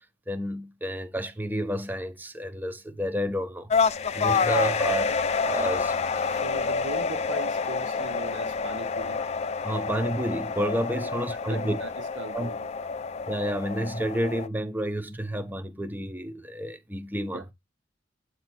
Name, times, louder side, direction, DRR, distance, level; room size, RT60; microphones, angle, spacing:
voice 1, 0.3-3.7 4.1-6.0 9.6-11.8 12.3-12.5 13.3-17.4, equal, 10° right, 0.7 m, -30 dB
sound 1, 3.7-14.5, left 5 dB, 35° left, 0.4 m, -28 dB
voice 2, 6.2-9.2 11.0-11.1 11.4-12.9 17.3-17.5, right 4 dB, 70° right, 0.7 m, -40 dB
8.0 x 2.7 x 6.0 m
head